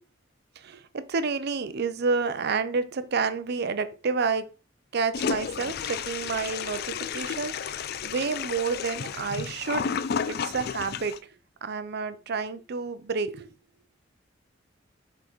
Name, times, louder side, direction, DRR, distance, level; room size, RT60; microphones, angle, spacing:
voice 1, 0.6-4.5 4.9-9.9 10.3-11.2 11.6-13.5, right 4 dB, 55° right, 0.6 m, -29 dB
Toilet flush, 5.1-11.2, left 7 dB, 55° left, 0.4 m, -32 dB
5.6 x 3.8 x 4.5 m
head